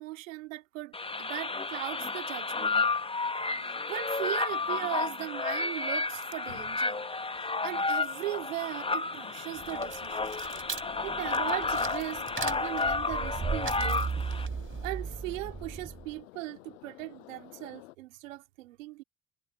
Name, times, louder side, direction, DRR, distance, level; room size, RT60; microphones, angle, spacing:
voice 1, 0.0-2.8 3.7-7.0 7.6-10.4 11.0-14.1 14.8-19.0, right 19 dB, 90° right, 2.4 m, -39 dB
sound 1, 0.9-14.5, left 3 dB, 15° left, 1.0 m, -31 dB
sound 2, 1.0-18.0, left 22 dB, 85° left, 6.3 m, -52 dB
sound 3, 9.6-16.1, right 5 dB, 30° right, 3.2 m, -37 dB
hypercardioid pair, 60°, 38 cm